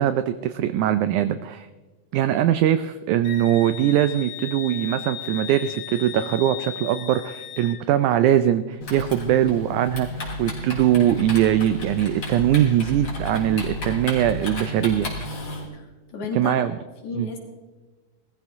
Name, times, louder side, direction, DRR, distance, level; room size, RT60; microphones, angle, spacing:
voice 1, 0.0-1.7 2.1-10.1 10.4-15.1 16.3-16.7 17.1-17.3, right 11 dB, 85° right, 12 dB, 1.7 m, -21 dB
Wind instrument woodwind instrument, 3.2-7.8, left 11 dB, 90° left, 3.3 m, -36 dB
Typing, 8.8-15.6, left 1 dB, 30° left, 3.6 m, -32 dB
voice 2, 16.1-17.4, left 4 dB, 60° left, 0 dB, 3.4 m, -33 dB
19.5 x 14.0 x 3.6 m, 1.3 s
omnidirectional pair, 4.0 m